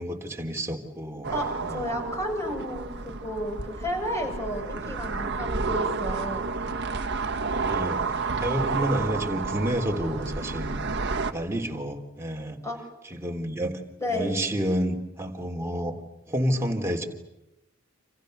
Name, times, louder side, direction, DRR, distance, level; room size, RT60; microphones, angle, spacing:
voice 1, 0.0-1.3 1.6-1.8 5.6-5.8 7.5-8.0 8.4-10.8 11.3-12.6 13.1-13.8 14.1-15.9 16.3-17.1, equal, 15° right, 1 dB, 3.4 m, -29 dB
sound 1, 1.2-11.3, right 4 dB, 55° right, 1.8 m, -30 dB
voice 2, 1.3-6.5 12.6-12.8 14.0-14.3, equal, 15° left, 3 dB, 7.2 m, -32 dB
29.0 x 28.0 x 6.7 m, 0.92 s
head